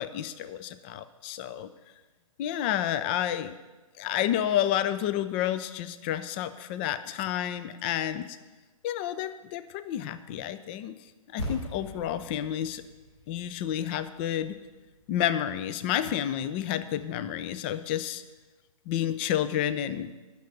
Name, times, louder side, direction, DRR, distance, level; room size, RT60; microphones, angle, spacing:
voice 1, 0.0-1.7 2.4-3.6 4.0-8.3 8.8-10.9 11.3-12.8 13.3-14.6 15.1-18.2 18.9-20.1, left 11 dB, 20° left, 12 dB, 0.4 m, -30 dB
sound 1, 11.4-15.9, equal, 55° left, 4.3 m, -42 dB
9.1 x 6.6 x 8.4 m, 1.2 s
figure-of-eight pair, 130°, 18 cm